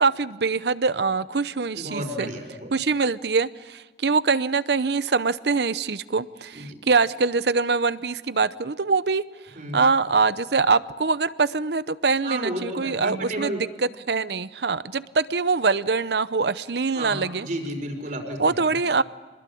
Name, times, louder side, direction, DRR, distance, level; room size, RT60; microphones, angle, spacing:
voice 1, 0.0-2.3 2.7-9.2 9.7-13.7 14.1-17.5 18.4-19.0, right 4 dB, 65° right, 0.7 m, -23 dB
voice 2, 1.7-2.7 6.5-6.8 9.5-9.8 12.2-13.6 16.9-18.7, right 1 dB, 45° right, 4.7 m, -32 dB
26.5 x 21.0 x 8.5 m
head